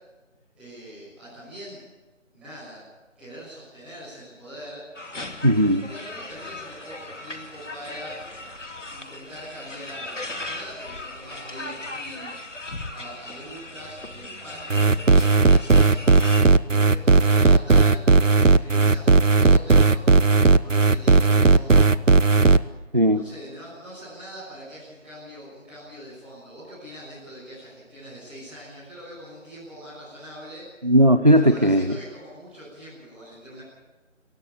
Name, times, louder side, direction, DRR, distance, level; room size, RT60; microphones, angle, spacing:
voice 1, 0.5-1.8 2.3-2.8 3.1-4.8 5.7-8.2 8.9-12.3 12.9-16.0 16.6-22.3 23.0-30.7 31.3-33.6, equal, 5° right, -14 dB, 7.9 m, -42 dB
sound 1, 4.9-16.4, left 2 dB, 65° left, 2.6 m, -38 dB
voice 2, 5.4-5.8 22.9-23.2 30.8-31.9, equal, 35° right, 11 dB, 0.8 m, -17 dB
sound 2, 14.7-22.6, right 3 dB, 75° right, 1.1 m, -16 dB
25.5 x 17.0 x 9.7 m, 1.2 s
figure-of-eight pair, 170°, 39 cm